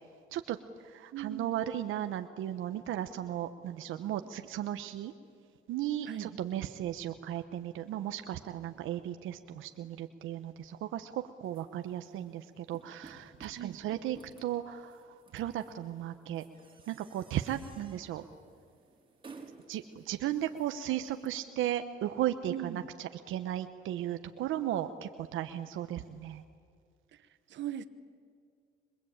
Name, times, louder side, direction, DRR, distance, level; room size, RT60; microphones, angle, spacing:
voice 1, 0.3-5.1 5.7-16.4 16.9-18.3 19.7-26.4, right 12 dB, 85° right, 8 dB, 1.1 m, -36 dB
voice 2, 1.1-1.7 6.1-6.4 13.6-13.8 22.5-22.8 27.1-27.9, right 11 dB, 70° right, 12 dB, 1.3 m, -40 dB
sound 1, 11.4-21.3, right 4 dB, 25° right, 4.0 m, -56 dB
26.5 x 23.0 x 8.8 m, 2.2 s
cardioid pair, 90°, 20 cm